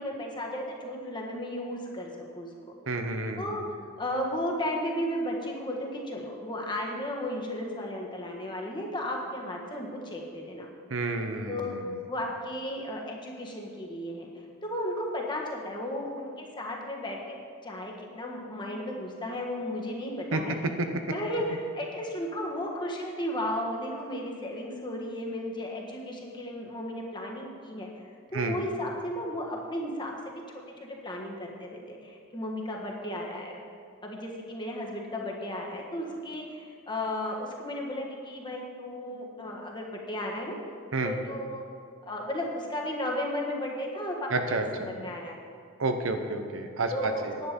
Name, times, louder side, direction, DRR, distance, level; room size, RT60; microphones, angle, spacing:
voice 1, 0.0-2.7 3.4-3.6 4.0-10.7 11.5-11.7 12.1-14.3 14.6-17.4 17.6-20.6 21.1-27.9 28.3-30.4 30.8-33.6 34.0-40.6 41.0-41.6 42.0-45.4 46.9-47.5, left 1 dB, 20° left, -1 dB, 1.5 m, -34 dB
voice 2, 2.9-3.6 10.9-11.9 20.3-20.9 28.3-28.6 40.9-41.1 44.3-44.9 45.8-47.4, right 2 dB, 65° right, 6 dB, 0.9 m, -30 dB
10.5 x 9.5 x 5.2 m, 2.3 s
head